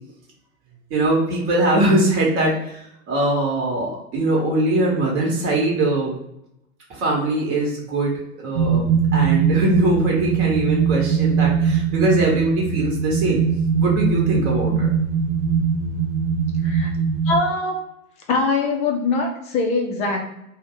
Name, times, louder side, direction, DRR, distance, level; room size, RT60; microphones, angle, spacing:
voice 1, 0.9-6.1 6.9-13.4 13.8-14.9, right 2 dB, 35° right, -2 dB, 1.1 m, -21 dB
sound 1, 8.5-17.3, right 6 dB, 60° right, 0.6 m, -21 dB
voice 2, 17.3-17.8 18.3-20.2, left 3 dB, 15° left, 1 dB, 0.4 m, -22 dB
2.4 x 2.2 x 3.6 m, 0.80 s
figure-of-eight pair, 95°, 42 cm